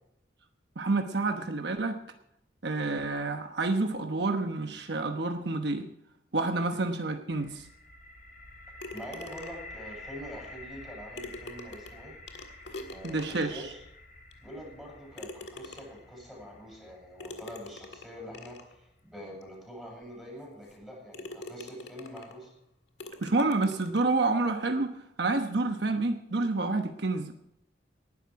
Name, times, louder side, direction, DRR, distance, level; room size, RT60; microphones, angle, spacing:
voice 1, 0.8-2.0 2.6-5.9 6.3-7.7 13.0-13.7 23.2-27.3, right 3 dB, 65° right, 5 dB, 1.1 m, -29 dB
sound 1, 7.3-19.1, left 1 dB, 45° left, 1.5 m, -49 dB
sound 2, 8.8-9.8 10.8-10.9 11.2-13.7 14.3-14.4 15.2-16.1 17.2-18.7 19.4-19.5 20.0-20.1 20.7-20.8 21.1-22.4 23.0-24.1, left 2 dB, 65° left, 1.8 m, -45 dB
voice 2, 8.9-12.2 12.6-13.8 14.4-22.5, equal, ahead, -4 dB, 7.9 m, -45 dB
19.0 x 11.0 x 4.8 m, 0.78 s
head